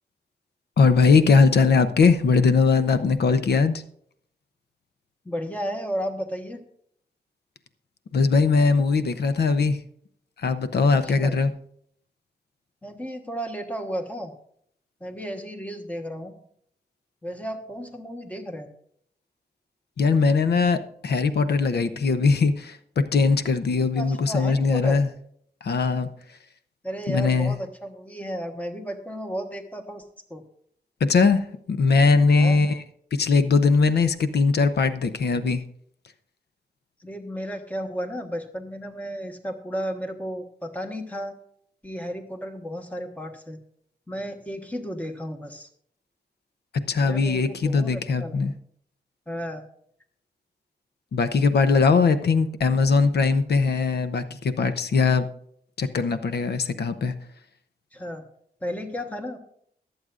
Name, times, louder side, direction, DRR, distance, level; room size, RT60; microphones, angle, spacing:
voice 1, 0.8-3.8 8.1-9.8 10.4-11.5 20.0-25.1 25.6-26.1 27.1-27.6 31.0-32.8 33.1-35.6 46.9-48.5 51.1-55.3 55.8-57.1, left 4 dB, 80° left, 11 dB, 0.8 m, -20 dB
voice 2, 5.2-6.6 11.0-11.3 12.8-14.3 15.0-16.4 17.2-18.7 23.9-25.0 26.8-30.0 30.3-30.4 32.3-32.6 37.0-41.3 41.8-43.6 44.1-45.7 47.0-48.4 49.3-49.6 57.9-58.2 58.6-59.4, equal, 10° left, 4 dB, 1.2 m, -33 dB
23.0 x 7.8 x 2.5 m, 0.66 s
wide cardioid pair, 165°, 17 cm